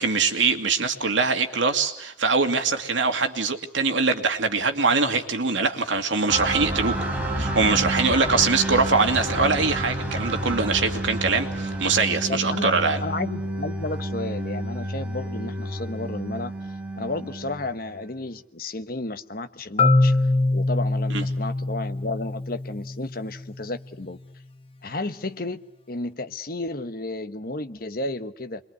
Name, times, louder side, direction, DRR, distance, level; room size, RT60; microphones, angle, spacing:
voice 1, 0.0-6.9 7.4-13.0 21.1-21.2, right 4 dB, 75° right, 6 dB, 2.5 m, -23 dB
sound 1, 6.3-18.1, right 1 dB, 10° right, 4.1 m, -30 dB
voice 2, 12.3-12.7 13.0-16.5 17.0-20.2 20.5-24.2 24.8-28.6, left 2 dB, 50° left, 9 dB, 1.2 m, -32 dB
Marimba xylophone, 19.8-23.7, left 2 dB, 30° left, 1.0 m, -23 dB
27.0 x 22.5 x 9.6 m, 0.77 s
head